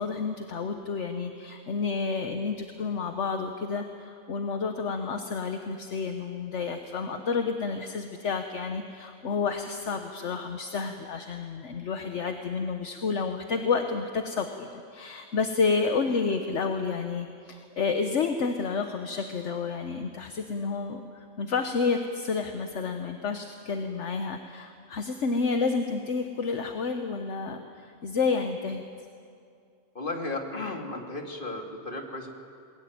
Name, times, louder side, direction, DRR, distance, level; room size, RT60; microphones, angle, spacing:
voice 1, 0.0-28.8, left 4 dB, 65° left, 6 dB, 1.4 m, -30 dB
voice 2, 29.9-32.3, left 2 dB, 40° left, 2 dB, 2.5 m, -34 dB
21.5 x 20.5 x 9.4 m, 2.4 s
omnidirectional pair, 1.3 m